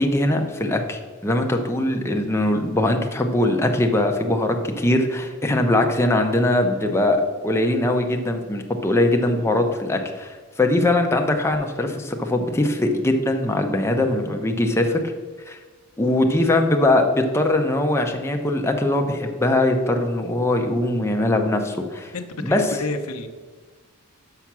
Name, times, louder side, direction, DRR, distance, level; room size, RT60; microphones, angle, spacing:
voice 1, 0.0-15.0 15.5-15.6 16.0-22.1 22.4-22.6, left 1 dB, 10° left, 3 dB, 0.6 m, -21 dB
voice 2, 22.1-23.3, left 3 dB, 90° left, 8 dB, 0.7 m, -30 dB
5.8 x 5.7 x 6.0 m, 1.5 s
head